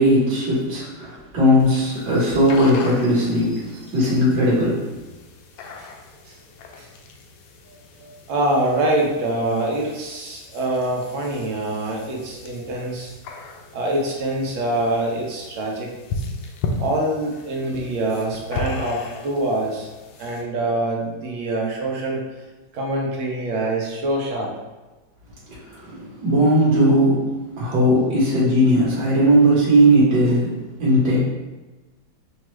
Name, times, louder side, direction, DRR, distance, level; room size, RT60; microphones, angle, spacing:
voice 1, 0.0-4.9 25.7-27.2 27.6-31.3, equal, 60° right, -9 dB, 2.0 m, -18 dB
sound 1, 1.6-20.4, left 3 dB, 80° left, 1.3 m, -36 dB
voice 2, 7.7-13.1 13.7-15.9 16.8-19.9 20.2-22.2 22.7-24.5, right 1 dB, 90° right, -1 dB, 1.6 m, -25 dB
5.7 x 2.4 x 3.1 m, 1.2 s
omnidirectional pair, 2.2 m